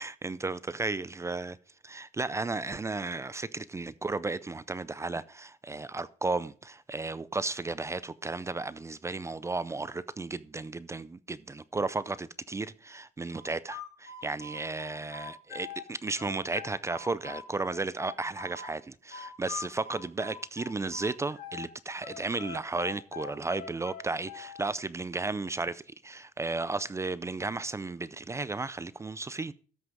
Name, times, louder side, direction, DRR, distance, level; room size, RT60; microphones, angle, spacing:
voice 1, 0.0-1.6 1.8-29.5, right 3 dB, 15° right, 0.4 m, -34 dB
sound 1, 13.3-15.9 16.2-18.7 19.1-21.7 22.0-24.7, left 6 dB, 75° left, 3.8 m, -42 dB
13.5 x 6.0 x 4.6 m
cardioid pair, 110°, 17 cm